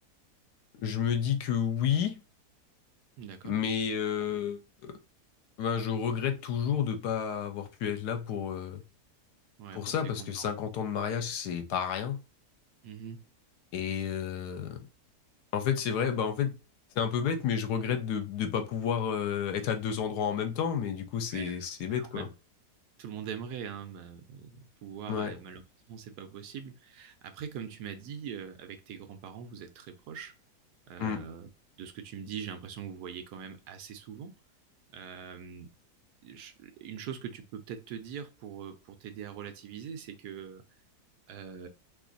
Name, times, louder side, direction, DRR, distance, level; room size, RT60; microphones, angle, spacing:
voice 1, 0.8-2.2 3.4-4.9 5.6-8.8 9.7-12.2 13.7-14.8 15.5-16.6 17.0-22.3 25.1-25.3 31.0-31.3, left 8 dB, 80° left, 1.2 m, -31 dB
voice 2, 3.2-3.6 9.6-10.5 12.8-13.2 21.3-21.6 22.0-22.3 23.0-25.6 25.9-30.3 30.9-31.5 31.8-34.4 34.9-35.7 36.2-40.6 41.3-41.7, right 7 dB, 75° right, 1.2 m, -42 dB
3.0 x 2.5 x 3.9 m
omnidirectional pair, 1.7 m